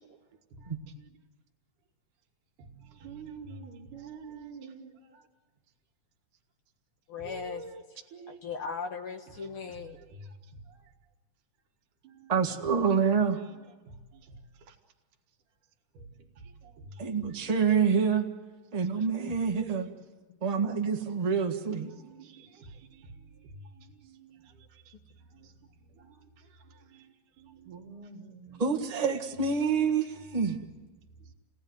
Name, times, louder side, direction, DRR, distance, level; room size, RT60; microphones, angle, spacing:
voice 1, 3.0-4.9 8.1-8.4 12.2-12.3 22.0-22.4 27.6-28.6, right 5 dB, 90° right, 4 dB, 3.2 m, -45 dB
voice 2, 7.1-7.6 8.3-10.0 19.3-19.4 19.7-19.9 20.3-20.4, left 5 dB, 55° left, 5 dB, 1.8 m, -38 dB
voice 3, 12.3-13.4 17.0-18.3 18.7-19.9 20.4-21.9 28.6-30.6, right 6 dB, 20° right, 3 dB, 1.0 m, -27 dB
29.5 x 18.0 x 9.6 m, 1.4 s
omnidirectional pair, 3.5 m